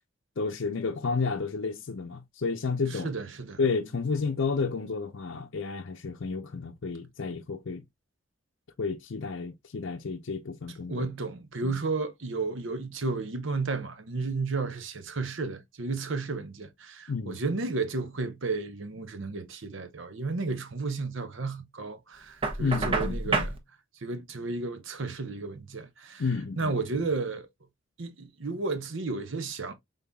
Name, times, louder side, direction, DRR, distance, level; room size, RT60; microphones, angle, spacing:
voice 1, 0.4-3.1 3.6-7.8 8.8-11.1 11.6-11.8 17.1-17.4 22.6-23.5 26.2-27.1, left 4 dB, 65° left, 0.6 m, -31 dB
voice 2, 2.9-3.6 10.9-23.6 24.0-26.2 26.6-27.5 28.0-29.7, right 3 dB, 70° right, 0.9 m, -33 dB
Knock, 22.4-23.6, right 3 dB, 25° right, 0.9 m, -28 dB
5.4 x 3.8 x 2.2 m
head